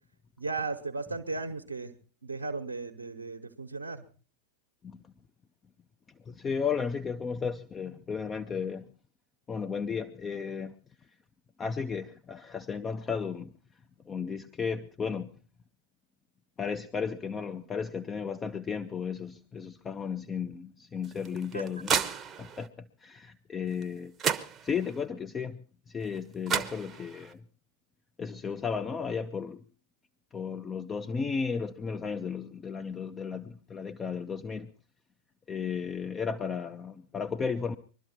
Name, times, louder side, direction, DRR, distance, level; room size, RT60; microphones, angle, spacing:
voice 1, 0.4-1.9 2.2-4.0 21.5-21.6, right 3 dB, 80° right, 1.3 m, -35 dB
voice 2, 6.3-8.9 9.5-10.7 11.6-13.5 14.1-15.4 16.6-22.0 22.4-24.1 24.6-27.4 28.2-29.6 30.3-34.7 35.5-37.8, left 6 dB, 20° left, 0.7 m, -34 dB
sound 1, 21.0-22.7 23.8-23.9 24.2-25.0 26.1-26.2 26.5-27.3, right 7 dB, 25° right, 0.9 m, -32 dB
22.0 x 12.5 x 4.3 m
figure-of-eight pair, 90°, 0 cm